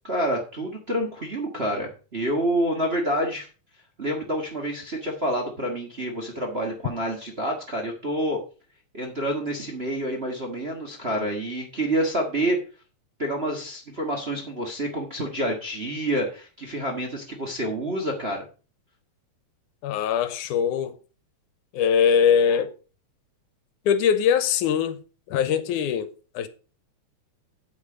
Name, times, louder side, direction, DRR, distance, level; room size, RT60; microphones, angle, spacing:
voice 1, 0.0-3.5 4.0-8.4 8.9-12.6 13.2-18.4, right 1 dB, 30° right, 1.2 m, -28 dB
voice 2, 19.8-21.0 21.7-22.7 23.9-25.0 25.3-26.5, left 7 dB, 85° left, 2.4 m, -22 dB
8.7 x 8.2 x 5.1 m
omnidirectional pair, 3.5 m